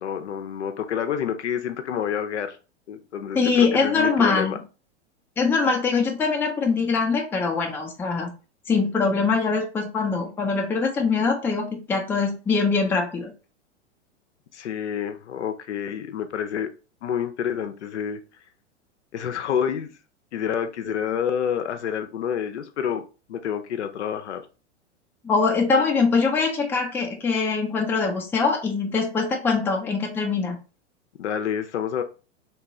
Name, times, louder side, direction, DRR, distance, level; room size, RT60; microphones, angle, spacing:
voice 1, 0.0-2.6 2.9-4.6 14.5-16.7 17.0-18.2 19.1-19.9 20.3-23.0 23.3-24.4 31.2-32.0, left 8 dB, 75° left, 0.5 m, -28 dB
voice 2, 3.3-4.5 5.4-8.3 8.7-13.3 25.2-30.6, left 4 dB, 5° left, 0.4 m, -23 dB
3.0 x 2.2 x 2.7 m
figure-of-eight pair, 95°, 35 cm